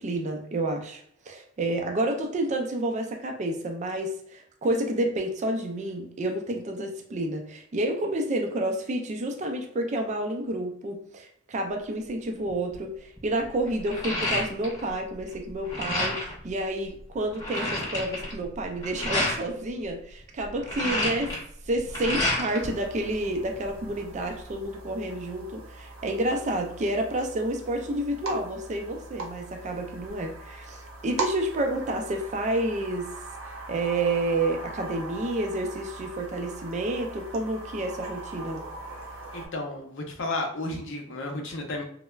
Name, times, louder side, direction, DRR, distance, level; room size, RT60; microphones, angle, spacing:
voice 1, 0.0-21.4 21.7-33.1 33.5-38.6, right 1 dB, 35° right, 4 dB, 0.3 m, -29 dB
sound 1, 12.5-12.7 13.2-14.9 15.2-16.4 16.9-17.0 17.2-19.4 20.4-22.7 23.0-23.9, left 1 dB, 20° left, 0.9 m, -30 dB
sound 2, 22.6-39.5, right 2 dB, 85° right, 0.7 m, -40 dB
voice 2, 39.3-41.8, left 2 dB, 65° left, 2 dB, 0.6 m, -32 dB
3.2 x 2.0 x 2.3 m, 0.65 s
head